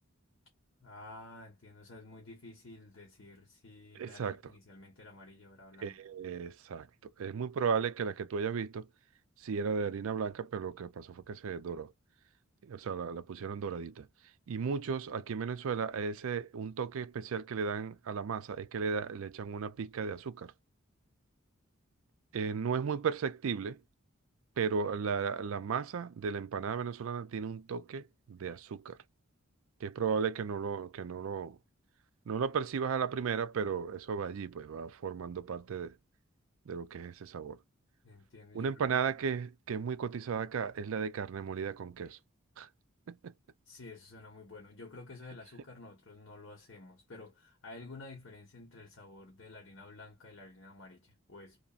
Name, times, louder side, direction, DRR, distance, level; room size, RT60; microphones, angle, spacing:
voice 1, 0.8-6.0 38.0-38.7 43.7-51.6, left 2 dB, 60° left, 1.2 m, -51 dB
voice 2, 4.0-4.4 5.8-8.9 9.4-11.9 12.6-14.1 14.5-20.5 22.3-23.8 24.6-29.0 29.8-31.6 32.3-35.9 36.7-37.6 38.5-42.2 42.6-42.7 43.1-43.3, right 6 dB, 70° right, 0.4 m, -35 dB
3.0 x 2.4 x 2.4 m
head